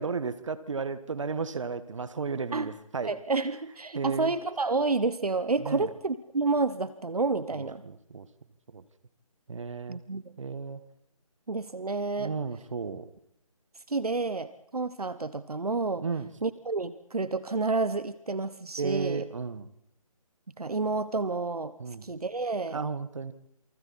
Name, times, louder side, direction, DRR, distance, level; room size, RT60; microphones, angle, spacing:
voice 1, 0.0-3.1 3.9-4.3 5.6-5.9 7.5-8.3 8.7-8.8 9.5-10.0 10.4-10.8 12.2-13.1 16.0-16.3 18.8-19.7 21.8-22.1 22.7-23.3, right 5 dB, 55° right, 13 dB, 1.6 m, -33 dB
voice 2, 3.0-7.8 9.9-10.3 11.5-12.3 13.9-16.0 16.4-19.2 20.6-21.7 22.0-22.8, right 3 dB, 85° right, 14 dB, 1.2 m, -29 dB
28.0 x 24.0 x 4.3 m, 0.79 s
figure-of-eight pair, 155°, 19 cm